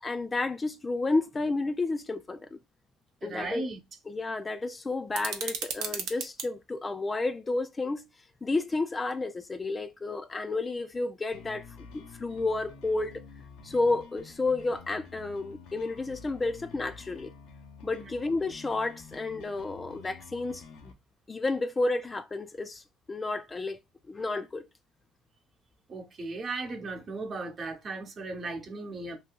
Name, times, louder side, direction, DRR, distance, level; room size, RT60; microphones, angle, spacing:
voice 1, 0.0-2.6 3.2-3.6 4.1-8.1 8.4-13.2 13.6-17.3 17.8-20.9 21.3-22.8 23.1-23.8 24.1-24.6, left 3 dB, 25° left, 0.4 m, -31 dB
voice 2, 3.2-3.8 25.9-29.2, right 3 dB, 45° right, 0.9 m, -36 dB
sound 1, 5.1-6.5, right 7 dB, 75° right, 0.6 m, -35 dB
sound 2, 11.3-20.9, left 5 dB, 75° left, 0.6 m, -49 dB
2.7 x 2.2 x 3.5 m
supercardioid pair, 75°, 0 cm